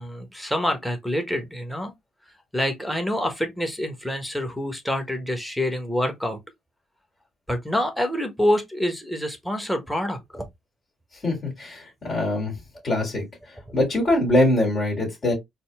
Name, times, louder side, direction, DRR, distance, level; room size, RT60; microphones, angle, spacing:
voice 1, 0.0-1.9 2.5-6.4 7.5-10.4, left 1 dB, 5° left, 1.2 m, -26 dB
voice 2, 11.2-12.5 12.8-13.2 13.7-15.3, left 1 dB, 45° left, 2.2 m, -22 dB
4.2 x 2.1 x 3.4 m
hypercardioid pair, 50°, 0 cm